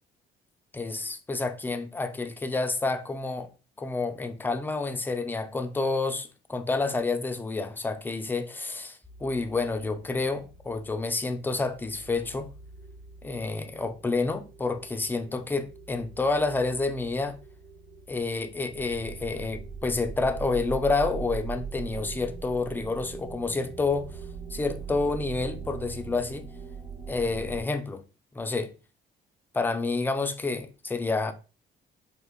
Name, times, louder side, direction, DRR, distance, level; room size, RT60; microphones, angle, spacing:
voice 1, 0.7-3.5 3.8-12.5 13.2-17.4 18.1-24.2 24.5-26.5 27.1-28.0 28.3-28.7 29.5-31.3, left 3 dB, 10° left, 0.3 m, -29 dB
sound 1, 9.0-27.6, right 6 dB, 15° right, 0.7 m, -42 dB
3.6 x 2.5 x 2.2 m
cardioid pair, 90°, 20 cm